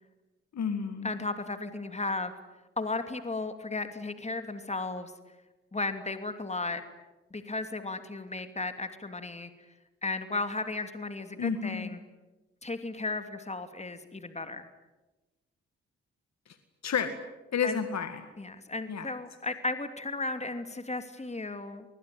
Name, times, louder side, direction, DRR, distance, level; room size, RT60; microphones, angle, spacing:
voice 1, 0.5-1.1 11.4-12.0 16.5-16.6 16.8-17.1 17.5-18.3 18.9-19.1, left 6 dB, 65° left, 9 dB, 2.1 m, -31 dB
voice 2, 1.0-2.3 2.8-5.1 5.7-6.8 7.3-9.5 10.0-12.0 12.6-14.7 17.6-17.8 18.4-21.9, left 3 dB, 20° left, 9 dB, 2.8 m, -35 dB
28.0 x 20.5 x 9.5 m, 1.1 s
supercardioid pair, 45°, 29 cm